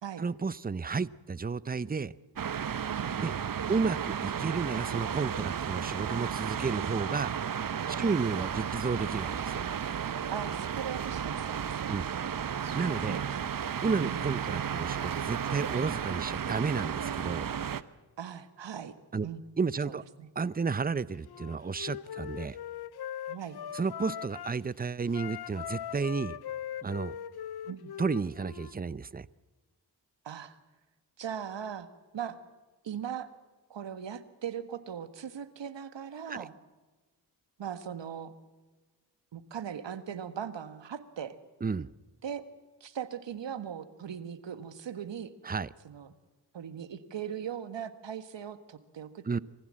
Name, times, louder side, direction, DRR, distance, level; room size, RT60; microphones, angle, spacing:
voice 1, 0.2-2.1 3.2-3.3 3.7-7.3 7.9-9.6 11.9-12.1 12.7-13.2 13.8-17.5 19.1-19.3 19.6-20.0 20.4-22.6 23.7-26.4 26.8-27.2 28.0-29.3 36.3-36.5 41.6-41.9 45.4-45.7 49.3-49.4, right 4 dB, 20° right, 19 dB, 0.7 m, -32 dB
sound 1, 2.4-17.8, right 8 dB, 45° right, 0.9 m, -33 dB
voice 2, 8.0-8.7 10.3-12.0 13.1-13.6 14.0-14.2 18.2-18.9 19.2-19.4 19.9-20.3 23.3-23.6 27.6-27.9 30.2-30.6 31.2-31.9 32.1-32.4 32.8-33.3 33.7-36.5 37.6-38.3 39.3-41.3 42.2-42.4 42.8-45.3 45.8-46.1 46.5-49.2, right 8 dB, 65° right, 12 dB, 1.6 m, -39 dB
Wind instrument woodwind instrument, 21.2-24.6 25.1-28.7, left 10 dB, 55° left, 0.7 m, -40 dB
23.5 x 15.5 x 7.6 m, 1.3 s
cardioid pair, 50°, 46 cm